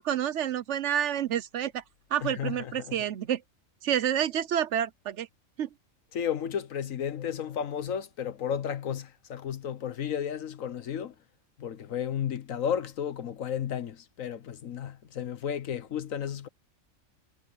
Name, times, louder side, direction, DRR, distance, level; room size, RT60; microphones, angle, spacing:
voice 1, 0.0-1.8 2.1-3.4 3.8-5.3 5.6-5.7, right 10 dB, 65° right, 0.9 m, -29 dB
voice 2, 2.2-3.1 6.1-11.1 11.6-16.5, left 8 dB, 75° left, 1.4 m, -33 dB
omnidirectional pair, 1.4 m